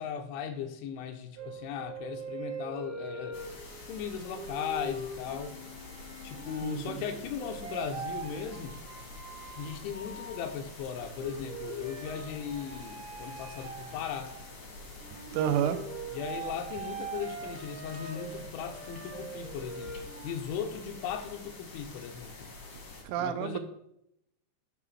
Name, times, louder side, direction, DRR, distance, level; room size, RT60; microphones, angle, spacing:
voice 1, 0.0-3.4 3.9-5.6 6.2-8.8 9.6-14.3 16.1-22.5 23.2-23.6, left 7 dB, 85° left, 6 dB, 3.1 m, -37 dB
sound 1, 1.4-20.8, right 3 dB, 55° right, 1.5 m, -43 dB
sound 2, 3.3-23.0, left 2 dB, 60° left, 1.5 m, -47 dB
voice 2, 6.6-7.0 15.3-15.8 23.0-23.6, right 10 dB, 85° right, 9 dB, 3.2 m, -29 dB
10.5 x 3.6 x 5.9 m, 0.78 s
omnidirectional pair, 5.5 m